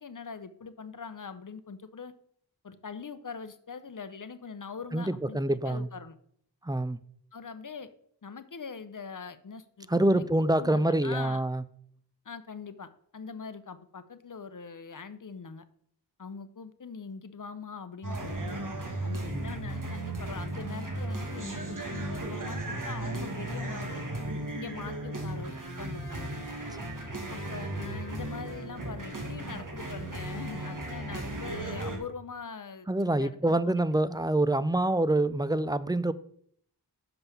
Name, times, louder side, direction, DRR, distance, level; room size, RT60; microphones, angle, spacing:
voice 1, 0.0-2.1 2.6-6.1 7.3-7.9 8.2-10.3 10.6-11.4 12.2-15.6 16.2-18.6 19.0-24.0 24.5-26.3 27.3-32.9 33.1-33.8, left 5 dB, 50° left, 0.7 m, -42 dB
voice 2, 4.9-5.9 6.6-7.0 9.9-11.6 19.3-19.5 26.8-26.9 32.9-36.1, right 1 dB, 10° right, 0.4 m, -26 dB
sound 1, 18.0-32.0, right 1 dB, 50° right, 1.6 m, -36 dB
5.9 x 5.4 x 6.9 m
wide cardioid pair, 55°, 41 cm